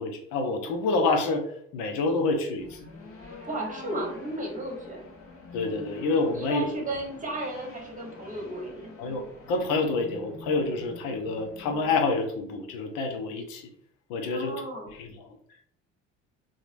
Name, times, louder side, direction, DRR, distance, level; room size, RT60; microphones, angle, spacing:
voice 1, 0.0-1.5 1.7-2.8 5.5-6.6 9.0-13.7 14.1-14.5 15.0-15.1, left 3 dB, 65° left, 4 dB, 0.7 m, -27 dB
sound 1, 2.6-12.1, left 3 dB, 35° left, 0.9 m, -46 dB
voice 2, 3.4-5.0 6.3-8.9 14.3-14.9, right 1 dB, 20° right, 0 dB, 1.1 m, -34 dB
3.0 x 2.3 x 2.5 m, 0.67 s
hypercardioid pair, 55°, 38 cm